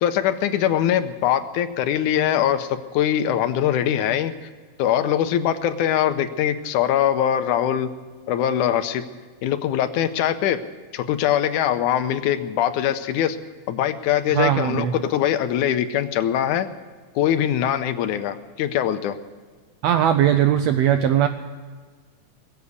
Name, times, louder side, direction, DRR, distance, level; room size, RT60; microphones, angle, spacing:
voice 1, 0.0-4.3 4.8-7.9 8.3-9.0 9.4-10.6 10.9-13.4 13.7-16.7 17.2-19.2, left 10 dB, 80° left, 10 dB, 2.1 m, -22 dB
voice 2, 14.3-14.9 19.8-21.3, right 10 dB, 85° right, 9 dB, 1.5 m, -19 dB
20.5 x 8.4 x 8.1 m, 1.5 s
omnidirectional pair, 3.6 m